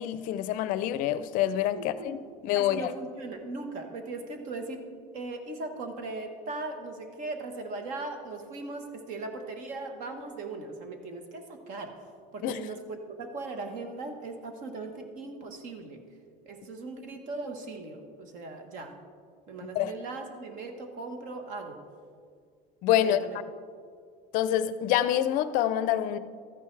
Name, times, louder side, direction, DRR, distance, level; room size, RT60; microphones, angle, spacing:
voice 1, 0.0-2.2 2.4-2.9 12.4-12.6 19.7-19.9 22.8-23.2 24.3-26.2, left 11 dB, 50° left, 0.5 m, -26 dB
voice 2, 1.7-2.2 2.5-4.9 5.1-12.0 12.3-16.0 16.4-19.0 19.5-21.8 22.9-23.4, right 3 dB, 50° right, 1.3 m, -39 dB
13.5 x 9.1 x 3.3 m
cardioid pair, 155°, 17 cm